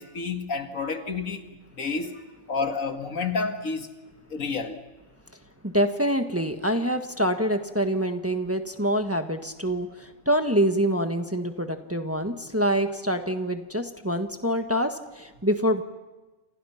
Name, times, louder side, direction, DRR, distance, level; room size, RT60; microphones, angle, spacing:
voice 1, 0.0-1.4 1.7-2.2 2.5-3.9 4.3-4.8, left 4 dB, 85° left, 2.3 m, -29 dB
voice 2, 5.6-15.8, equal, 10° right, 1.4 m, -26 dB
28.5 x 28.0 x 5.8 m
omnidirectional pair, 1.4 m